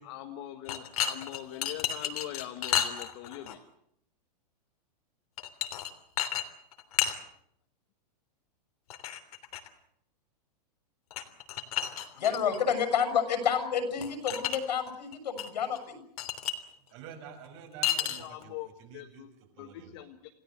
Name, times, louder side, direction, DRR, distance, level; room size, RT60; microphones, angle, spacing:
voice 1, 0.1-3.6 18.5-18.7 18.9-19.3 19.6-19.7 19.9-20.0, left 13 dB, 40° left, 5 dB, 1.7 m, -41 dB
sound 1, 0.7-3.6 5.4-5.9 6.2-6.5 6.7-7.2 8.9-9.7 11.1-12.6 14.0-14.6 14.8-15.5 15.8-15.9 16.2-16.6 17.8-18.4, left 9 dB, 60° left, 3.2 m, -32 dB
voice 2, 12.1-16.0, left 7 dB, 85° left, 9 dB, 6.6 m, -29 dB
voice 3, 16.9-19.2 19.6-19.9, right 8 dB, 40° right, 6 dB, 6.1 m, -48 dB
28.5 x 18.0 x 8.1 m, 0.72 s
supercardioid pair, 165°, 21 cm